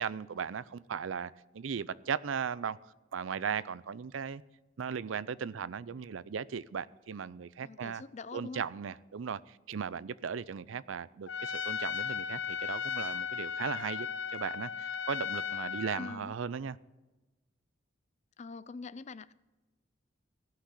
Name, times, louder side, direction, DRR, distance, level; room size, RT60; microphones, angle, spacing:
voice 1, 0.0-2.8 3.1-4.4 4.8-8.0 8.3-16.8, right 6 dB, 85° right, 0.5 m, -37 dB
voice 2, 7.6-8.7 16.0-16.3 18.4-19.3, left 4 dB, 35° left, 0.4 m, -44 dB
Trumpet, 11.3-16.2, left 6 dB, 70° left, 0.7 m, -36 dB
15.5 x 6.0 x 8.3 m
head